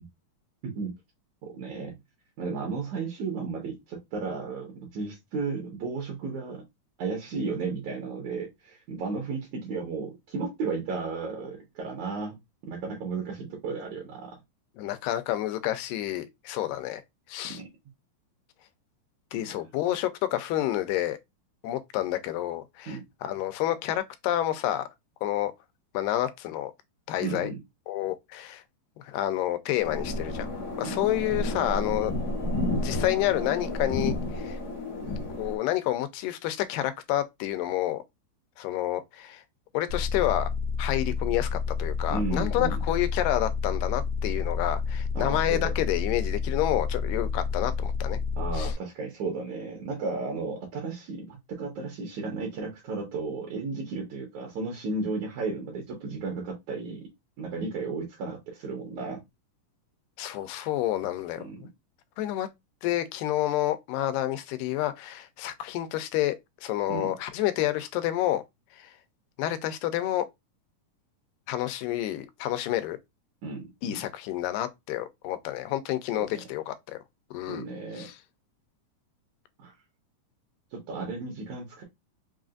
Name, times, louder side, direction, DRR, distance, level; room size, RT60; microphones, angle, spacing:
voice 1, 1.4-2.0 2.4-6.6 7.0-12.4 12.7-14.4 17.5-17.7 22.9-23.0 27.2-27.6 30.8-31.0 42.1-42.8 45.1-45.7 48.4-57.1 57.4-59.2 61.4-61.6 66.9-67.1 73.4-74.0 76.2-76.4 77.5-78.1 79.6-79.7 80.7-81.8, right 4 dB, 70° right, 2.2 m, -34 dB
voice 2, 14.8-17.0 17.3-17.6 19.3-21.2 21.6-24.9 25.2-25.5 25.9-26.7 27.1-27.5 27.9-28.6 29.0-30.5 30.8-32.1 32.8-34.6 35.4-38.0 38.6-39.4 39.7-40.5 40.8-48.2 48.5-48.7 60.2-61.5 62.2-62.5 62.8-68.4 68.8-68.9 69.4-70.3 71.5-73.0 73.8-77.0 77.3-77.6 78.0-78.2, left 13 dB, 90° left, 2.2 m, -29 dB
sound 1, 29.8-35.6, left 2 dB, 55° left, 0.8 m, -31 dB
sound 2, 39.9-48.8, left 5 dB, 90° right, 2.7 m, -30 dB
5.6 x 2.4 x 2.4 m
omnidirectional pair, 3.8 m